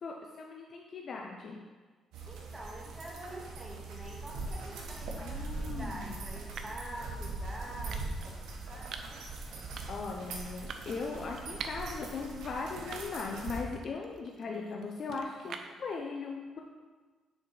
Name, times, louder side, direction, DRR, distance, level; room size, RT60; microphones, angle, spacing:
voice 1, 0.0-1.6 5.2-6.1 9.9-16.6, left 4 dB, 55° left, 0 dB, 0.7 m, -39 dB
sound 1, 2.1-13.6, right 3 dB, 90° right, 1.2 m, -41 dB
voice 2, 2.3-5.3 5.6-9.0, right 1 dB, 10° right, -3 dB, 1.9 m, -46 dB
sound 2, 5.3-5.5 6.6-6.9 7.9-8.3 8.9-9.2 9.8-10.1 10.7-12.0 12.4-12.5 12.9-13.4 13.7-15.9, right 6 dB, 65° right, 0.6 m, -45 dB
7.1 x 4.4 x 4.9 m, 1.4 s
cardioid pair, 90°, 0 cm